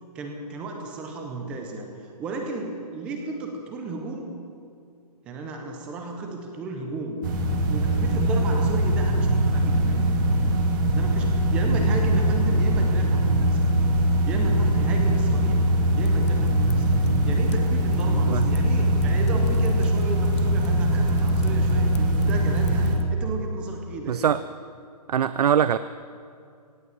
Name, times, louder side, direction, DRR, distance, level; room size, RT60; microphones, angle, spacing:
voice 1, 0.1-1.9 2.2-4.3 5.3-7.2 7.7-10.1 10.9-13.6 14.3-15.6 15.9-16.9 17.2-24.3, right 3 dB, 5° right, 3 dB, 0.5 m, -33 dB
sound 1, 7.2-23.0, right 1 dB, 30° right, 1.7 m, -22 dB
Fire, 16.0-23.1, left 6 dB, 45° left, 0.8 m, -35 dB
voice 2, 24.1-24.4 25.1-25.8, right 9 dB, 70° right, 14 dB, 0.5 m, -22 dB
17.0 x 8.3 x 7.9 m, 2.3 s
hypercardioid pair, 170°, 21 cm